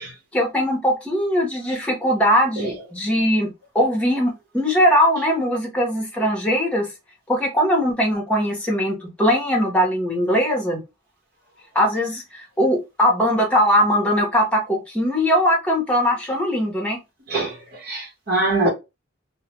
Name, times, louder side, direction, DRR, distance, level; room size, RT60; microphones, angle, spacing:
voice 1, 0.3-3.5 3.7-6.9 7.3-10.8 11.7-17.0, equal, 5° left, 0.9 m, -20 dB
voice 2, 17.3-18.7, right 2 dB, 55° right, 1.2 m, -23 dB
2.4 x 2.2 x 3.0 m
head